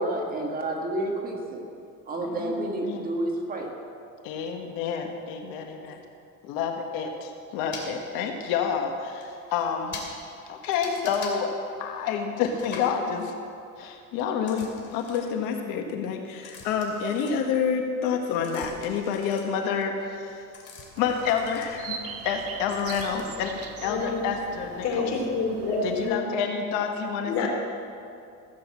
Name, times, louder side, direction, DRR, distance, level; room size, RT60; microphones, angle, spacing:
voice 1, 0.0-1.6 2.1-3.7, right 1 dB, 25° right, 1 dB, 1.8 m, -29 dB
voice 2, 2.2-3.1 4.2-6.0 6.4-10.0 10.5-11.5 11.8-13.3 13.8-20.5 21.0-22.0 22.2-25.1 25.8-27.5, left 6 dB, 75° left, 4 dB, 1.4 m, -29 dB
sound 1, 7.7-7.9 8.8-8.9 9.2-9.3 9.5-9.7 9.9-10.1 10.7-11.4 12.4-12.9 14.4-15.4 16.4-17.8 18.1-22.4 22.7-23.3, left 4 dB, 35° left, 2.5 m, -43 dB
sound 2, 20.9-26.1, right 6 dB, 45° right, 1.3 m, -41 dB
voice 3, 23.8-24.2 24.8-26.2 27.2-27.5, left 4 dB, 50° left, 0 dB, 3.0 m, -27 dB
15.5 x 8.0 x 7.5 m, 2.5 s
cardioid pair, 155°, 32 cm